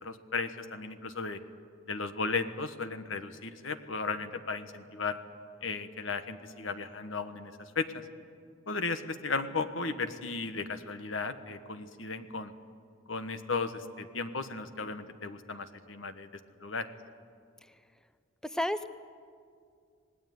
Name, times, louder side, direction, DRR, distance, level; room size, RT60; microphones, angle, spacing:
voice 1, 0.0-1.4 1.9-5.2 5.6-8.0 8.7-12.5 13.1-16.3 16.6-16.9, left 4 dB, 75° left, 10 dB, 1.4 m, -35 dB
voice 2, 18.4-18.9, left 1 dB, 5° left, 11 dB, 0.6 m, -32 dB
26.5 x 19.0 x 9.4 m, 2.3 s
head